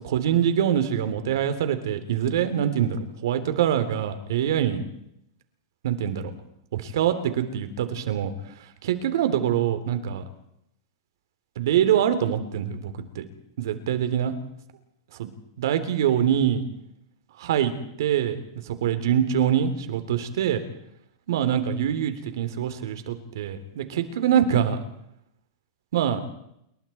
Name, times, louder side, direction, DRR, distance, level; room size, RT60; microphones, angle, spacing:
voice 1, 0.0-4.8 5.8-6.3 6.7-8.3 8.8-10.2 11.6-13.2 13.6-14.3 15.2-15.3 15.6-16.6 17.4-17.7 18.0-20.6 21.3-24.8 25.9-26.2, right 9 dB, 70° right, 9 dB, 3.4 m, -24 dB
28.0 x 23.0 x 4.5 m, 0.78 s
supercardioid pair, 155°, 2 cm